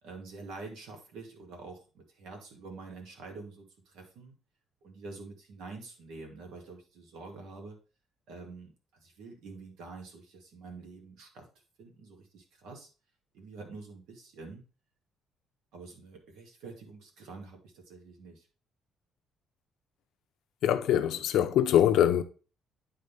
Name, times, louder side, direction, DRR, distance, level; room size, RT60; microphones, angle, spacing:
voice 1, 0.0-4.4 4.8-7.8 8.3-8.7 9.0-11.5 11.8-12.9 13.3-14.6 15.7-18.5, right 3 dB, 85° right, 2.2 m, -47 dB
voice 2, 20.6-22.2, left 10 dB, 65° left, 0.7 m, -23 dB
9.4 x 4.0 x 3.5 m
cardioid pair, 175°, 0 cm